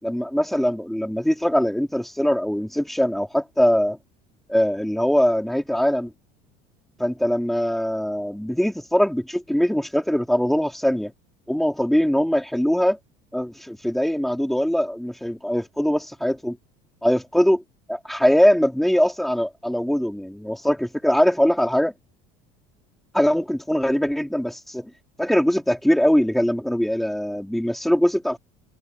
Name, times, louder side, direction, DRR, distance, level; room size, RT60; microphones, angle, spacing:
voice 1, 0.0-4.0 4.5-6.1 7.0-11.1 11.5-13.0 13.3-16.6 17.0-17.6 17.9-21.9 23.1-24.9 25.2-28.4, equal, ahead, 4.2 m, -22 dB
cardioid pair, 160°, 15 cm